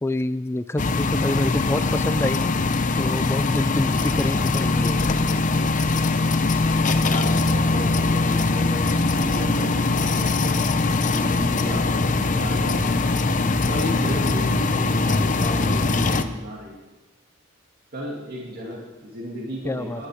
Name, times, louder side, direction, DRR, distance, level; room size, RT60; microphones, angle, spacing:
voice 1, 0.0-2.6 3.0-5.0 19.6-20.0, left 1 dB, 15° left, 14 dB, 0.4 m, -27 dB
sound 1, 0.8-16.2, left 3 dB, 40° left, 0.7 m, -22 dB
voice 2, 7.0-10.6 11.0-12.9 13.7-16.8 17.9-20.1, equal, 50° right, -3 dB, 2.4 m, -34 dB
18.5 x 11.0 x 5.0 m, 1.2 s
head